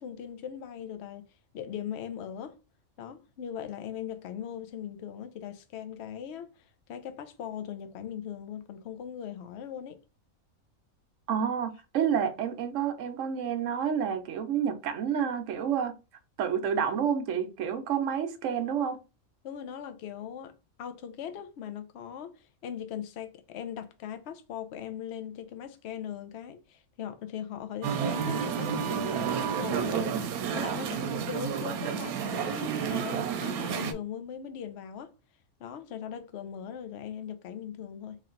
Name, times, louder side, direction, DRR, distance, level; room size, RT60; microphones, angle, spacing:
voice 1, 0.0-2.6 3.0-10.0 19.4-35.1 35.6-38.2, left 9 dB, 60° left, 0.8 m, -40 dB
voice 2, 11.3-15.9 16.4-19.0, right 8 dB, 65° right, 1.0 m, -29 dB
Musical instrument, 27.8-33.9, right 7 dB, 90° right, 1.1 m, -30 dB
3.2 x 2.9 x 3.8 m
omnidirectional pair, 1.5 m